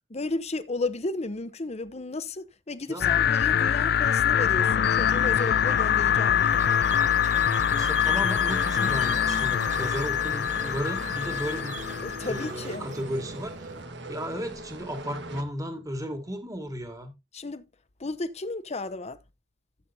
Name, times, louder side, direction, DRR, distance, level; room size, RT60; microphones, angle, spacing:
voice 1, 0.1-6.6 12.0-12.9 17.3-17.7 18.0-19.2, left 2 dB, 35° left, 0.8 m, -33 dB
voice 2, 2.9-3.2 7.7-11.8 12.2-13.8 14.1-17.1, equal, 20° right, 1.9 m, -34 dB
sound 1, 3.0-12.5, left 9 dB, 60° left, 0.4 m, -24 dB
Squeak, 5.1-13.8, right 5 dB, 40° right, 0.7 m, -41 dB
sound 2, 8.4-15.4, right 1 dB, 65° right, 1.5 m, -41 dB
14.5 x 7.5 x 2.7 m
head